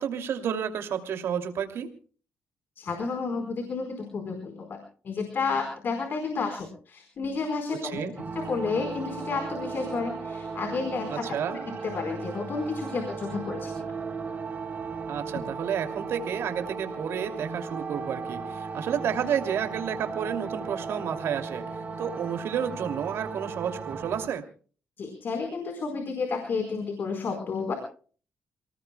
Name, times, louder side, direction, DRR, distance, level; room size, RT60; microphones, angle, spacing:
voice 1, 0.0-1.9 7.8-8.1 11.1-11.6 15.1-21.6 22.0-24.4, right 8 dB, 75° right, 6 dB, 2.7 m, -31 dB
voice 2, 2.8-4.8 5.0-13.9 25.0-27.7, left 4 dB, 55° left, 4 dB, 4.5 m, -31 dB
sound 1, 8.2-24.3, right 4 dB, 40° right, 3.1 m, -36 dB
29.0 x 18.5 x 2.3 m, 0.42 s
cardioid pair, 100°, 4 cm